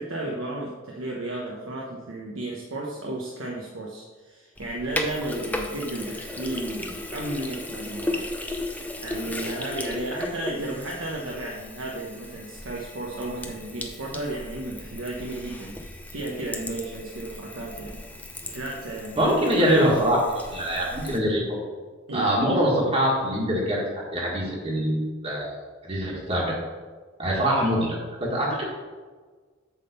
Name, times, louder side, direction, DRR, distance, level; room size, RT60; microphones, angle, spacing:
voice 1, 0.0-8.3 9.0-18.1 18.4-20.1 22.1-22.3, right 2 dB, 85° right, -2 dB, 0.9 m, -33 dB
Sink (filling or washing), 4.6-21.2, left 1 dB, 10° left, 0.6 m, -36 dB
voice 2, 19.1-20.2 20.5-21.6 22.1-25.5 25.9-26.5 27.2-28.6, equal, 30° right, -4 dB, 1.6 m, -24 dB
8.2 x 3.7 x 6.7 m, 1.4 s
head